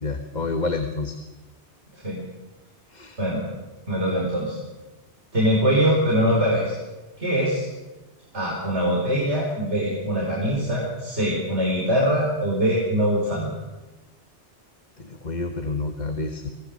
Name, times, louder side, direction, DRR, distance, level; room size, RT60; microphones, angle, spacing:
voice 1, 0.0-1.2 2.9-3.2 15.0-16.5, left 3 dB, 40° left, 6 dB, 1.6 m, -29 dB
voice 2, 3.9-4.6 5.3-6.8 7.2-7.7 8.3-13.5, equal, 80° right, -4 dB, 5.4 m, -23 dB
25.5 x 17.5 x 7.7 m, 1.1 s
omnidirectional pair, 1.2 m